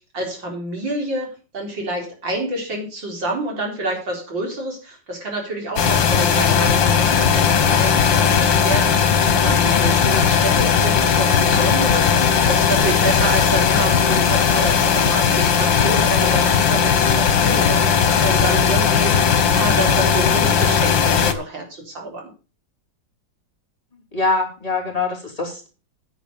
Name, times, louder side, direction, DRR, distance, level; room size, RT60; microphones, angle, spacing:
voice 1, 0.1-17.8 18.2-19.1 19.5-22.3, right 1 dB, 80° right, 0 dB, 4.5 m, -28 dB
sound 1, 5.8-21.3, left 7 dB, 85° left, 2.0 m, -17 dB
voice 2, 24.1-25.7, left 3 dB, 20° left, 0 dB, 3.4 m, -24 dB
9.8 x 7.5 x 6.7 m, 0.35 s
omnidirectional pair, 2.0 m